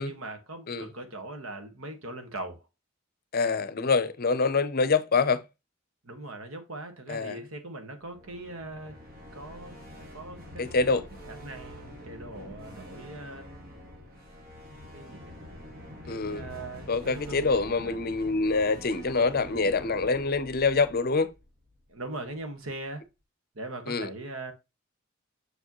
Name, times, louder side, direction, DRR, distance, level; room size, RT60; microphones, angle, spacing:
voice 1, 0.0-2.6 6.0-8.9 9.3-13.4 14.9-15.4 16.0-18.0 21.9-23.0 23.5-24.5, right 2 dB, 80° right, 1.6 m, -41 dB
voice 2, 3.3-5.4 7.1-7.4 10.6-11.0 16.1-16.5 16.9-21.3 23.9-24.1, left 4 dB, 45° left, 0.6 m, -25 dB
sound 1, 8.1-22.0, equal, 45° right, 1.9 m, -46 dB
6.5 x 4.8 x 3.0 m
head